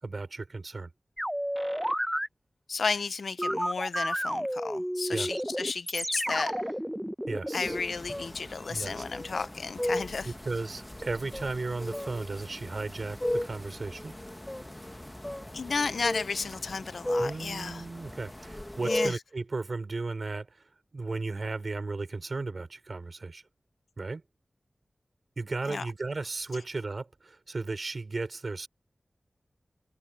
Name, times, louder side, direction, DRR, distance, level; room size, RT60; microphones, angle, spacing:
voice 1, 0.0-0.9 5.1-5.4 7.3-7.8 8.7-9.0 10.2-14.1 17.2-20.7 20.9-23.4 24.0-24.2 25.4-28.7, right 3 dB, 60° right, 5.0 m, -35 dB
sound 1, 1.2-2.3 3.4-7.8, equal, 5° right, 1.0 m, -31 dB
voice 2, 2.7-6.6 7.5-10.3 15.5-17.8 18.8-19.2 25.7-25.9, left 4 dB, 80° left, 0.8 m, -33 dB
sound 2, 7.6-19.1, left 1 dB, 15° left, 1.5 m, -36 dB
cardioid pair, 45°, 0 cm